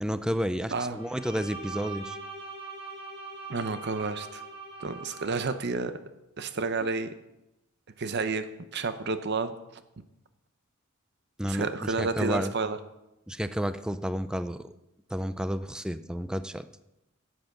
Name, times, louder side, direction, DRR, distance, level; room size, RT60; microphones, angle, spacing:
voice 1, 0.0-2.2 11.4-12.5 13.3-14.7 15.1-16.7, equal, 5° right, 12 dB, 0.4 m, -31 dB
Bowed string instrument, 0.9-5.6, right 3 dB, 30° right, 5.0 m, -42 dB
voice 2, 3.5-4.4 4.8-5.9 6.4-7.1 8.0-8.5 8.7-9.5 11.5-12.8, right 4 dB, 55° right, 11 dB, 0.7 m, -30 dB
10.5 x 7.7 x 6.7 m, 0.92 s
head